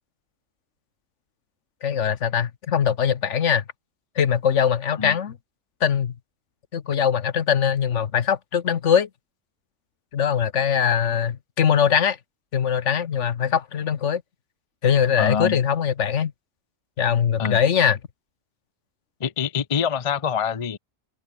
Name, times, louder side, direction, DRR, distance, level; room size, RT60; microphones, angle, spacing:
voice 1, 1.8-3.6 4.2-5.4 5.8-6.1 6.7-9.1 10.1-12.2 12.5-14.2 14.8-16.3 17.0-18.0, left 8 dB, 65° left, 1.3 m, -21 dB
voice 2, 15.2-15.6 17.4-17.6 19.2-20.8, left 7 dB, 35° left, 0.6 m, -25 dB
omnidirectional pair, 1.4 m